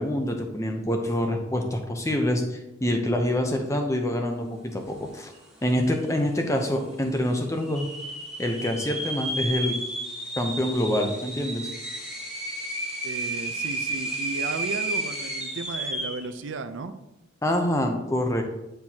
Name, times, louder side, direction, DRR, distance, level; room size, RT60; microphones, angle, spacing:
voice 1, 0.0-5.3 5.6-7.9 8.4-9.8 10.4-11.7 17.4-18.4, left 1 dB, 15° left, 4 dB, 0.7 m, -26 dB
sound 1, 5.4-5.5 5.7-6.2 6.7-6.8 7.6-16.3, right 1 dB, 5° right, 1.2 m, -32 dB
voice 2, 13.0-16.9, right 3 dB, 70° right, 9 dB, 0.5 m, -34 dB
9.4 x 4.5 x 2.8 m, 0.92 s
head